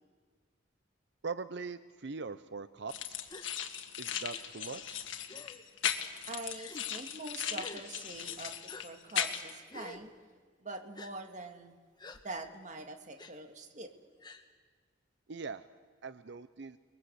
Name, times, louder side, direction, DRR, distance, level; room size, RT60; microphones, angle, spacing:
voice 1, 1.2-3.2 4.0-5.0 15.3-15.7 16.0-16.8, right 4 dB, 60° right, 13 dB, 0.7 m, -41 dB
sound 1, 2.9-9.5, left 9 dB, 80° left, 1.8 m, -38 dB
Gasp, 3.3-3.5 4.3-4.4 5.3-5.7 6.5-6.8 7.6-7.8 8.7-8.8 9.7-10.0 11.0-11.1 12.0-12.2 13.2-13.3 14.2-14.4, left 3 dB, 20° left, 1.4 m, -48 dB
voice 2, 6.3-10.1 10.6-11.8 12.2-13.9, right 2 dB, 40° right, 5 dB, 2.0 m, -44 dB
29.5 x 21.5 x 8.0 m, 1.5 s
head